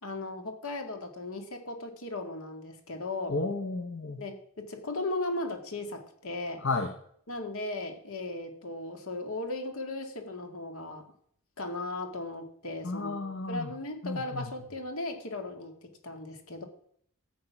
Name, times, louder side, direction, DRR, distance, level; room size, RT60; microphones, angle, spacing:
voice 1, 0.0-3.4 4.2-6.6 7.3-11.1 11.6-16.7, left 2 dB, 75° left, 5 dB, 2.1 m, -37 dB
voice 2, 3.3-4.2 6.6-6.9 12.8-13.7 14.0-14.5, left 3 dB, 55° left, 5 dB, 1.0 m, -32 dB
14.0 x 7.9 x 5.9 m, 0.66 s
head